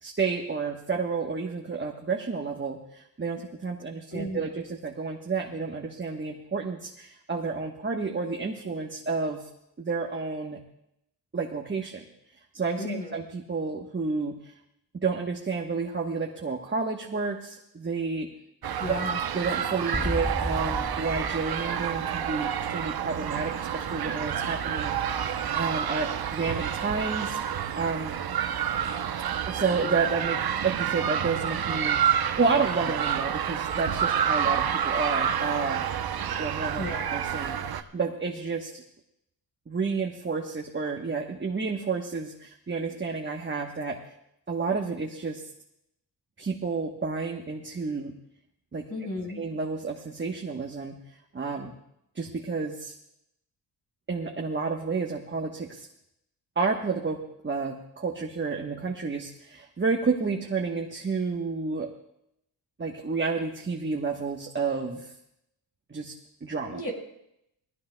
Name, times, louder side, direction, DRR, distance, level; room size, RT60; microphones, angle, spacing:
voice 1, 0.0-9.5 9.8-10.6 11.3-12.0 12.5-14.5 14.9-18.3 18.9-19.0 19.3-28.2 29.5-35.8 36.4-36.9 37.1-38.8 39.7-44.0 44.5-45.5 46.4-48.1 48.7-48.9 49.3-51.0 51.3-51.7 52.1-52.9 54.1-55.9 56.6-61.9 62.8-65.1 65.9-66.1 66.4-66.8, right 4 dB, 25° right, 1 dB, 1.1 m, -30 dB
voice 2, 4.1-4.6 12.8-13.2 18.8-19.2 36.8-37.1 48.9-49.4 66.7-66.9, left 2 dB, 45° left, 1 dB, 4.3 m, -34 dB
sound 1, 18.6-37.8, right 9 dB, 60° right, 0.8 m, -29 dB
sound 2, 19.9-22.9, equal, ahead, 0.5 m, -34 dB
20.0 x 16.0 x 2.2 m, 0.78 s
cardioid pair, 85°, 43 cm